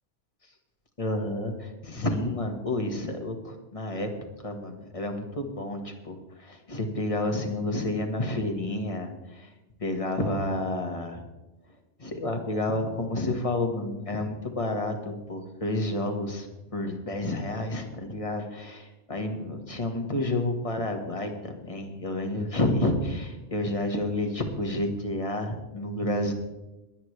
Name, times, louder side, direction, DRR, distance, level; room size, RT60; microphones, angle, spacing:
voice 1, 1.0-4.1 4.4-9.5 9.8-11.2 12.0-16.5 16.7-26.3, left 1 dB, 30° left, 4 dB, 1.5 m, -30 dB
22.5 x 8.9 x 3.3 m, 1.1 s
omnidirectional pair, 1.2 m